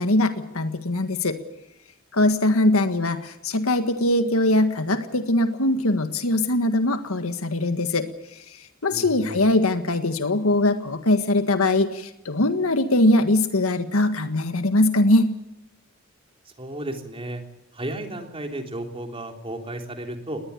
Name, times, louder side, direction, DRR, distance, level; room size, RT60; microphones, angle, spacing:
voice 1, 0.0-1.4 2.1-15.3, left 1 dB, 90° left, 8 dB, 1.7 m, -22 dB
voice 2, 8.9-9.4 16.6-17.4 17.7-20.4, right 1 dB, 25° right, 4 dB, 3.4 m, -33 dB
20.5 x 20.0 x 8.4 m, 0.88 s
head